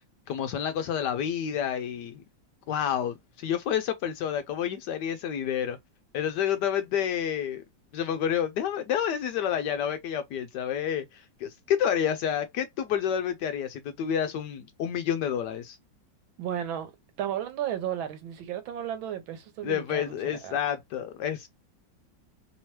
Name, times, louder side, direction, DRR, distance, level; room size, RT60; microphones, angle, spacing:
voice 1, 0.3-2.2 2.7-5.8 6.1-7.6 7.9-15.8 19.6-21.5, left 9 dB, 75° left, 1.0 m, -29 dB
voice 2, 16.4-16.9 17.2-20.1 20.4-20.6, right 10 dB, 80° right, 1.6 m, -33 dB
3.4 x 2.9 x 3.0 m
omnidirectional pair, 2.1 m